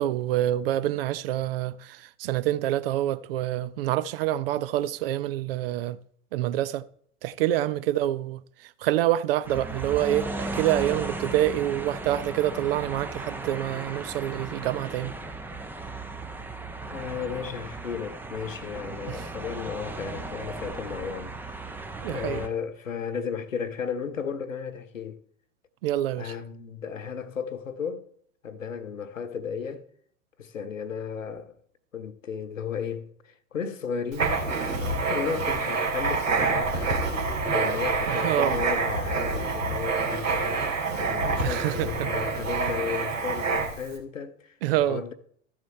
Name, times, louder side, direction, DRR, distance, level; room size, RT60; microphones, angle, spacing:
voice 1, 0.0-6.0 6.3-6.8 7.2-8.4 8.8-15.1 19.1-19.2 22.0-22.4 25.8-26.3 38.1-38.6 41.4-42.1 44.6-45.0, right 13 dB, 45° right, 0.7 m, -27 dB
sound 1, 9.4-22.5, right 2 dB, 5° right, 0.7 m, -36 dB
voice 2, 16.9-21.6 22.0-25.2 26.1-28.0 28.4-29.8 30.4-31.6 31.9-34.3 34.9-37.0 37.4-45.1, left 6 dB, 75° left, 1.1 m, -34 dB
Writing, 34.1-43.9, right 4 dB, 70° right, 2.8 m, -27 dB
13.5 x 7.4 x 4.2 m
figure-of-eight pair, 95°, 40 cm